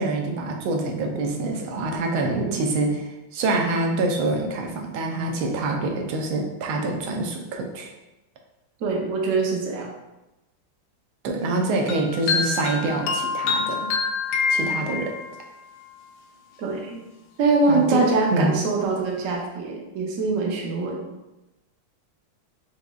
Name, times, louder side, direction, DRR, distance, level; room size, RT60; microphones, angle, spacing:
voice 1, 0.0-7.9 11.2-13.9 14.5-15.1 17.7-18.0 18.3-18.6, right 2 dB, 90° right, 2 dB, 1.5 m, -26 dB
voice 2, 8.8-9.9 16.6-17.0 17.4-21.0, right 3 dB, 65° right, -1 dB, 0.8 m, -23 dB
sound 1, 11.9-15.4, left 5 dB, 75° left, 1.0 m, -26 dB
5.2 x 3.3 x 2.3 m, 1.0 s
omnidirectional pair, 2.3 m